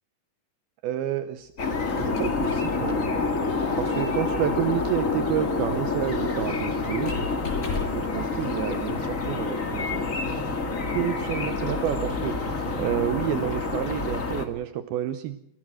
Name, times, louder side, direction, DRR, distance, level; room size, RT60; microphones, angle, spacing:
voice 1, 0.8-1.5 2.0-3.1 3.5-7.1 7.9-10.1 10.9-15.4, right 11 dB, 75° right, 10 dB, 2.7 m, -30 dB
Squeak, 1.6-8.2, left 5 dB, 80° left, 7.9 m, -39 dB
sound 1, 1.6-14.5, left 3 dB, 30° left, 1.6 m, -28 dB
26.5 x 17.0 x 6.3 m, 0.77 s
omnidirectional pair, 4.5 m